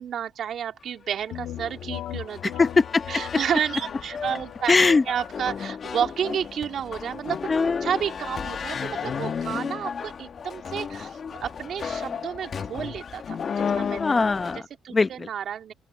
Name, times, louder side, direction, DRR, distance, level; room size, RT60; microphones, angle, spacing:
voice 1, 0.0-2.5 3.1-7.4 7.8-14.0 14.4-15.7, right 8 dB, 65° right, 2.6 m, -31 dB
sound 1, 1.1-14.6, left 6 dB, 50° left, 1.7 m, -33 dB
sound 2, 1.3-10.9, left 12 dB, 85° left, 1.5 m, -42 dB
voice 2, 2.6-3.0 4.7-5.0 7.5-7.9 14.0-14.6 14.9-15.3, left 4 dB, 30° left, 0.7 m, -20 dB
open air
cardioid pair, 90°, 0 cm